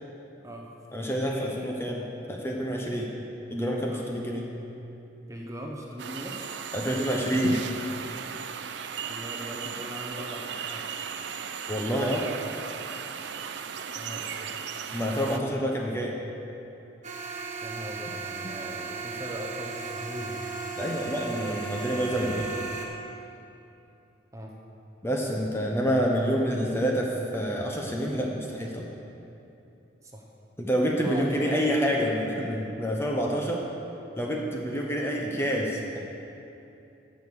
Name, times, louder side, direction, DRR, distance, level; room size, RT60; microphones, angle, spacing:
voice 1, 0.9-3.1 3.5-4.5 6.7-7.6 11.7-12.3 14.9-16.2 20.8-22.5 25.0-28.9 30.6-33.6 34.2-36.0, equal, 15° left, -1 dB, 0.9 m, -28 dB
voice 2, 5.3-6.5 9.0-10.8 13.9-14.5 17.6-20.5 24.3-24.5 30.0-30.2 31.0-31.6, equal, 15° right, -1 dB, 0.8 m, -40 dB
sound 1, 6.0-15.4, right 6 dB, 70° right, 0.5 m, -36 dB
sound 2, 17.0-22.9, right 4 dB, 40° right, 1.1 m, -36 dB
10.5 x 6.4 x 6.8 m, 2.8 s
head